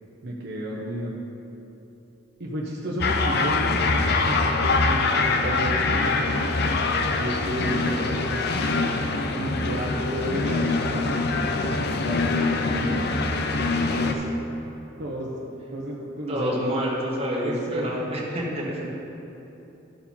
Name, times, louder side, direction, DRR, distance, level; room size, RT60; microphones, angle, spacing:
voice 1, 0.2-1.2 2.4-6.2 7.2-8.8 9.3-13.0 13.6-14.3 15.0-15.3 15.7-16.8 17.4-18.1, right 1 dB, 55° right, -4 dB, 0.9 m, -32 dB
sound 1, 3.0-14.1, left 3 dB, 55° left, 0.6 m, -24 dB
voice 2, 16.3-19.0, equal, 30° right, -4 dB, 1.5 m, -28 dB
13.0 x 4.7 x 5.5 m, 3.0 s
head